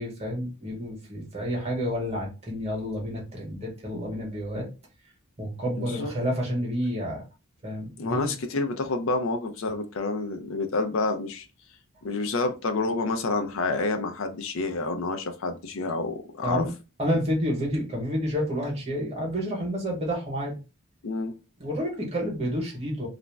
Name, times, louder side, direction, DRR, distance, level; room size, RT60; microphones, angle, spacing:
voice 1, 0.0-4.7 5.4-7.2 7.6-8.3 16.4-16.7 17.0-20.5 21.6-23.1, equal, 30° right, 1.0 m, -29 dB
voice 2, 5.8-6.1 8.0-11.5 12.0-16.6 21.0-21.3, left 3 dB, 65° left, 0.5 m, -28 dB
2.5 x 2.1 x 3.2 m
head